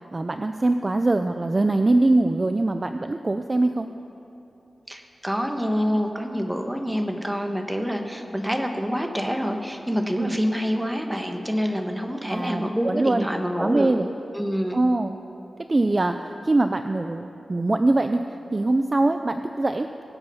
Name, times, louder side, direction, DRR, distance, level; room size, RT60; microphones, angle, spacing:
voice 1, 0.1-3.9 10.2-10.4 12.3-13.3 13.6-14.1 14.7-15.2 15.7-18.2 18.5-20.0, right 2 dB, 30° right, 7 dB, 0.4 m, -23 dB
voice 2, 4.9-13.9 14.3-14.8, equal, 5° right, 4 dB, 1.2 m, -26 dB
22.5 x 8.1 x 5.6 m, 2.9 s
wide cardioid pair, 125°, 0 cm